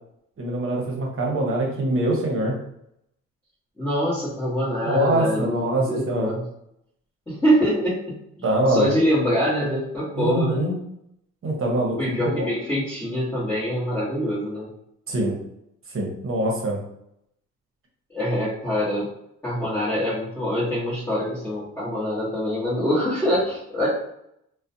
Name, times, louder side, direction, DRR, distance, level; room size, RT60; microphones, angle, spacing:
voice 1, 0.4-2.5 4.8-6.3 8.4-8.9 10.1-10.7 11.4-12.2 15.1-15.3 15.9-16.8, right 1 dB, 45° right, -1 dB, 0.9 m, -24 dB
voice 2, 3.8-6.5 7.3-10.6 12.0-14.7 18.1-19.1 19.4-23.9, equal, 10° left, -10 dB, 1.0 m, -24 dB
2.3 x 2.1 x 2.6 m, 0.77 s
cardioid pair, 90°, 30 cm